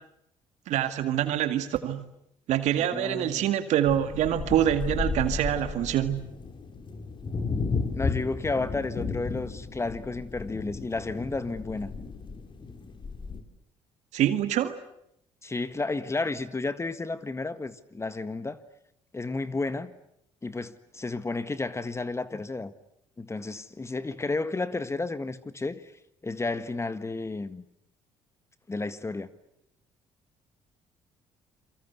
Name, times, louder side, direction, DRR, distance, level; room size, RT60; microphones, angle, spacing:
voice 1, 0.7-2.0 2.5-6.3 14.1-14.8, right 11 dB, 70° right, 2.0 m, -25 dB
voice 2, 2.9-3.4 8.0-11.9 15.4-18.6 19.1-19.9 20.4-22.7 23.2-25.9 26.2-27.6 28.7-29.3, left 3 dB, 20° left, 1.7 m, -32 dB
sound 1, 3.8-13.4, left 4 dB, 40° left, 3.7 m, -34 dB
28.5 x 24.0 x 8.2 m
supercardioid pair, 65°, 12 cm